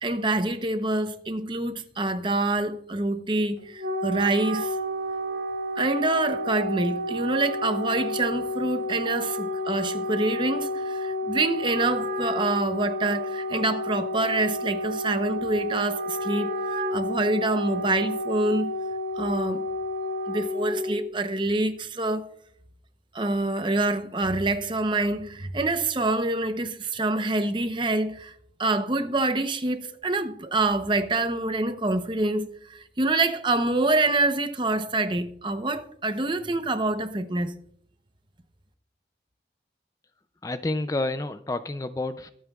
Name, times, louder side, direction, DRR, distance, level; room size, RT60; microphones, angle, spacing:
voice 1, 0.0-4.7 5.8-18.7 19.2-19.6 20.3-22.3 23.1-28.3 28.6-37.5, right 2 dB, 25° right, 0.7 m, -26 dB
Wind instrument woodwind instrument, 3.6-21.0, equal, 80° right, 2.8 m, -30 dB
voice 2, 40.4-42.3, left 2 dB, 20° left, 0.3 m, -29 dB
23.5 x 8.9 x 2.4 m
head